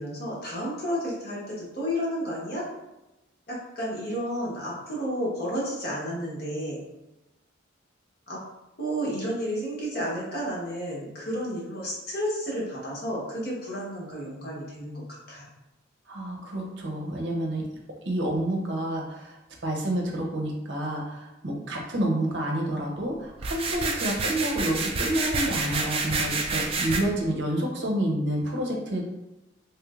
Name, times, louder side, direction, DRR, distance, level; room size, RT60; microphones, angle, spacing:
voice 1, 0.0-2.7 3.5-6.8 8.3-8.4 8.8-15.0 15.3-15.5, equal, 50° left, -5 dB, 1.0 m, -31 dB
voice 2, 16.1-17.7 18.1-19.4 19.6-29.0, right 1 dB, 60° right, 0 dB, 0.6 m, -29 dB
sound 1, 23.4-27.0, right 3 dB, 30° right, 0.3 m, -28 dB
3.1 x 3.0 x 2.4 m, 0.97 s
head